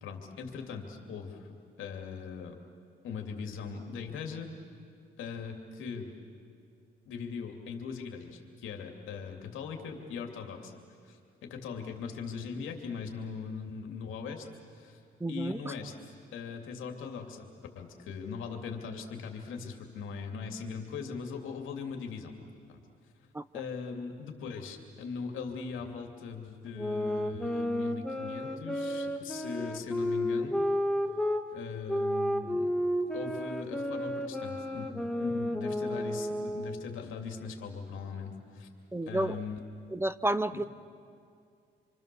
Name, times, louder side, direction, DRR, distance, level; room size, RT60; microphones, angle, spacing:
voice 1, 0.0-2.6 3.0-4.5 5.2-6.1 7.0-10.8 11.0-14.4 14.7-15.0 15.3-17.5 17.7-22.3 22.7-22.8 23.5-30.6 31.5-32.7 33.1-38.7 39.0-39.6 40.5-40.6, left 5 dB, 85° left, 3 dB, 2.7 m, -40 dB
voice 2, 15.2-15.6 23.3-23.4 38.9-39.4 39.9-40.6, right 1 dB, 10° right, 14 dB, 0.6 m, -30 dB
sound 1, 26.7-31.4 31.9-36.9, equal, 5° left, 1.6 m, -32 dB
27.0 x 25.0 x 6.9 m, 2.4 s
cardioid pair, 90°, 20 cm